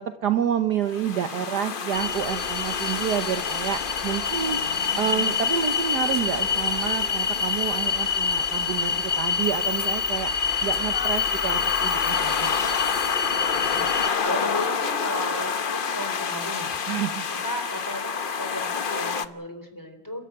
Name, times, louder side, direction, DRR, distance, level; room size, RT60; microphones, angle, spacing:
voice 1, 0.0-4.6 4.9-10.3 10.6-12.7 16.9-17.3, right 9 dB, 60° right, 9 dB, 1.4 m, -29 dB
sound 1, 0.9-19.2, left 6 dB, 65° left, 0.5 m, -29 dB
sound 2, 1.9-14.1, left 6 dB, 35° left, 1.0 m, -27 dB
voice 2, 13.5-17.0 17.3-20.3, equal, 10° left, 6 dB, 3.5 m, -35 dB
29.0 x 13.0 x 9.0 m, 0.93 s
omnidirectional pair, 2.3 m